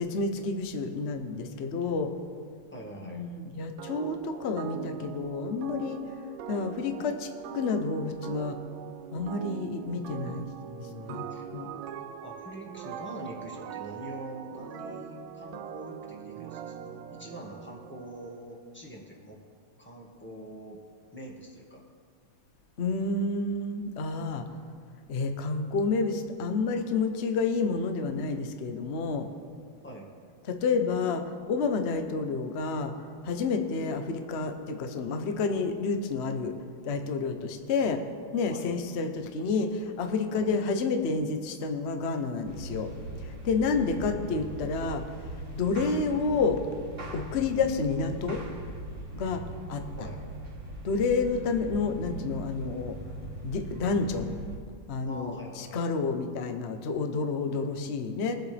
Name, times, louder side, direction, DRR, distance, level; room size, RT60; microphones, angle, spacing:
voice 1, 0.0-2.1 3.0-6.0 6.5-8.6 9.1-10.5 11.1-11.7 22.8-24.5 25.1-29.3 30.5-32.9 33.2-36.5 36.8-38.0 38.3-42.9 43.2-45.0 45.5-46.6 47.1-48.4 49.1-49.4 49.7-49.8 50.8-53.0 53.4-54.3 54.9-58.3, left 4 dB, 65° left, 6 dB, 0.6 m, -29 dB
voice 2, 2.7-3.2 10.6-11.5 12.2-19.4 19.8-20.8 21.1-21.8 29.8-30.1 38.5-38.7 40.3-40.5 43.8-44.6 50.0-50.2 55.0-55.9, equal, 5° left, -2 dB, 1.4 m, -44 dB
sound 1, 3.8-18.4, right 9 dB, 75° right, 1.3 m, -42 dB
sound 2, 42.4-54.6, right 1 dB, 35° right, 2.1 m, -40 dB
22.0 x 7.9 x 3.4 m, 2.1 s
omnidirectional pair, 2.4 m